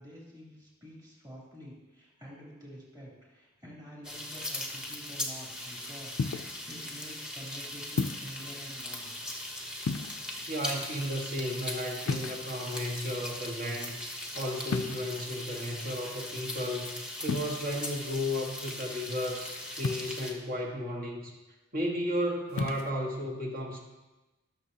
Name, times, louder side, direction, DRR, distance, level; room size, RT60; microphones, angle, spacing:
voice 1, 0.0-9.1 19.9-20.1, equal, 20° right, -5 dB, 3.1 m, -48 dB
sound 1, 4.0-20.3, left 1 dB, 5° right, 1.0 m, -39 dB
sound 2, 6.2-6.6 8.0-8.4 9.8-10.4 12.1-12.8 14.7-15.2 17.3-17.5 19.8-20.4 22.5-22.9, left 4 dB, 85° left, 0.4 m, -34 dB
voice 2, 10.5-14.0 14.3-21.3 21.7-23.8, equal, 45° right, 1 dB, 1.5 m, -34 dB
17.0 x 6.8 x 2.8 m, 1.1 s
head